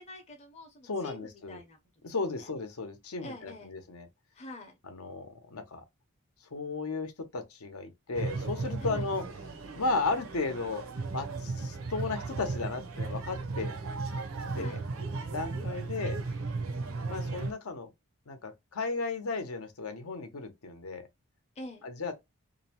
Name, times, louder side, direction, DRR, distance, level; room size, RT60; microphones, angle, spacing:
voice 1, 0.0-1.8 2.0-2.1 2.4-2.5 3.2-3.7 4.3-4.7 8.8-9.1 14.5-14.8 15.5-15.8 16.7-17.0 21.6-21.9, left 1 dB, 30° left, 0.6 m, -46 dB
voice 2, 0.8-1.6 2.0-4.1 4.8-5.8 6.5-9.2 9.7-10.8 11.1-13.7 14.5-14.8 15.3-16.2 17.1-17.9 18.3-21.1 21.8-22.1, left 3 dB, 85° left, 0.7 m, -35 dB
sound 1, 8.1-17.5, right 3 dB, 75° right, 0.5 m, -36 dB
2.6 x 2.0 x 2.8 m
head